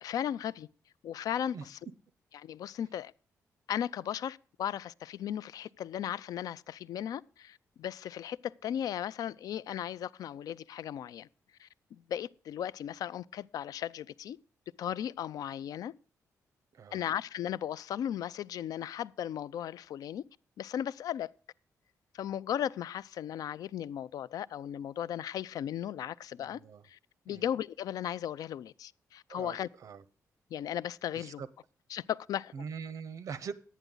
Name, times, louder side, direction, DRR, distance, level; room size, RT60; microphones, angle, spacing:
voice 1, 0.0-0.7 1.0-1.8 2.3-3.1 3.7-11.3 11.6-14.4 14.8-15.9 16.9-20.2 20.6-21.3 22.1-27.0 27.3-29.7 30.5-31.4 31.9-32.7, left 10 dB, 85° left, 0.4 m, -36 dB
voice 2, 26.4-26.8 27.3-27.4 29.3-29.6 29.8-30.0 31.1-31.5 32.5-33.5, right 6 dB, 60° right, 0.8 m, -42 dB
11.0 x 9.3 x 3.8 m
cardioid pair, 120°, 6 cm